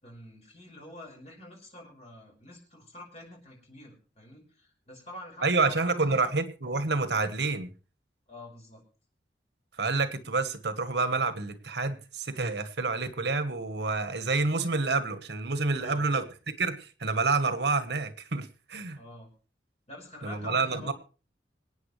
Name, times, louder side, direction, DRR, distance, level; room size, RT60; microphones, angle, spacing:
voice 1, 0.0-6.3 8.3-8.8 15.8-16.1 18.9-19.3 19.9-20.9, left 1 dB, 35° left, 0 dB, 5.4 m, -47 dB
voice 2, 5.4-7.7 9.8-19.0 20.2-20.9, right 3 dB, 75° right, 11 dB, 1.3 m, -28 dB
26.0 x 9.1 x 3.3 m, 0.37 s
head